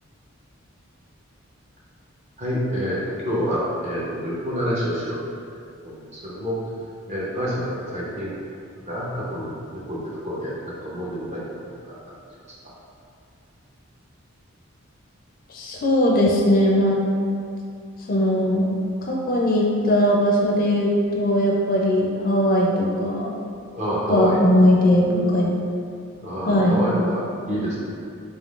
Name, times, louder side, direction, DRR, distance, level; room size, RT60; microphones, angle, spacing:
voice 1, 2.4-5.2 5.8-6.6 7.1-8.3 8.8-11.4 11.8-12.0 23.8-24.4 24.9-25.0 26.2-27.8, equal, 30° right, -6 dB, 0.7 m, -28 dB
voice 2, 15.5-17.0 18.1-18.7 19.1-23.3 24.1-25.5 26.5-26.9, equal, 40° left, -2 dB, 0.4 m, -19 dB
3.9 x 3.6 x 2.4 m, 2.4 s
head